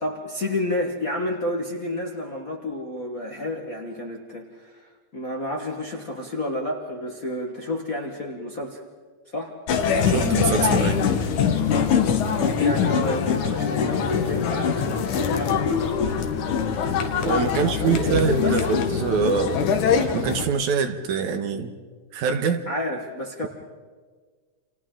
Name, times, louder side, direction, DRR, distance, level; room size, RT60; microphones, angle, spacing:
voice 1, 0.0-8.8 9.3-9.6 12.4-15.7 17.5-18.7 22.7-23.5, left 1 dB, 40° left, 1 dB, 1.3 m, -30 dB
sound 1, 9.7-20.4, left 6 dB, 75° left, 2.8 m, -23 dB
voice 2, 10.1-11.1 17.2-19.7 20.1-21.7 22.1-22.7, right 6 dB, 75° right, 8 dB, 2.5 m, -24 dB
30.0 x 27.5 x 3.8 m, 1.5 s
omnidirectional pair, 3.5 m